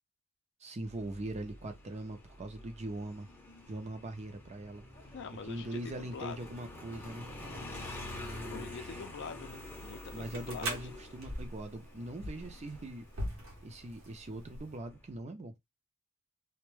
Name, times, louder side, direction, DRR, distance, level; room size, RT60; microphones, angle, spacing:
voice 1, 0.6-3.3 3.7-4.8 5.5-7.3 8.2-9.0 10.1-13.1 13.6-15.5, right 1 dB, 30° right, 0.5 m, -41 dB
Motorcycle, 0.8-15.2, left 1 dB, 10° left, 0.6 m, -48 dB
voice 2, 5.1-6.4 8.5-10.9, left 5 dB, 55° left, 0.5 m, -45 dB
sound 1, 9.5-14.8, right 1 dB, 65° right, 0.8 m, -43 dB
2.2 x 2.2 x 3.1 m
head